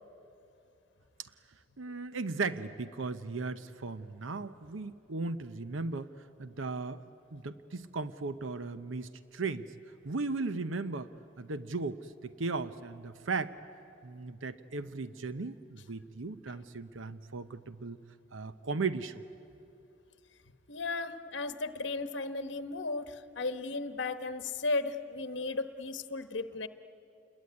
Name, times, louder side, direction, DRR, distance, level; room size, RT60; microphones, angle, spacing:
voice 1, 1.8-6.1 6.4-7.0 7.3-9.7 10.0-11.1 11.4-13.6 14.0-18.0 18.3-19.2, right 3 dB, 85° right, 12 dB, 0.8 m, -36 dB
voice 2, 20.7-26.7, left 3 dB, 65° left, 10 dB, 1.1 m, -35 dB
28.5 x 21.5 x 9.5 m, 2.8 s
head